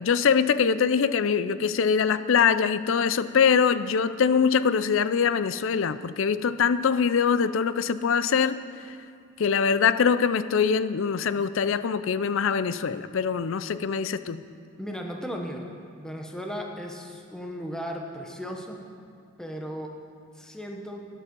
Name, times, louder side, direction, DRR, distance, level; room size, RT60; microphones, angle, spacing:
voice 1, 0.0-8.6 9.4-14.4, left 6 dB, 65° left, 14 dB, 0.4 m, -23 dB
voice 2, 14.8-18.8 19.4-19.9 20.3-21.1, equal, 5° left, 1 dB, 0.9 m, -36 dB
13.0 x 11.0 x 5.3 m, 2.4 s
head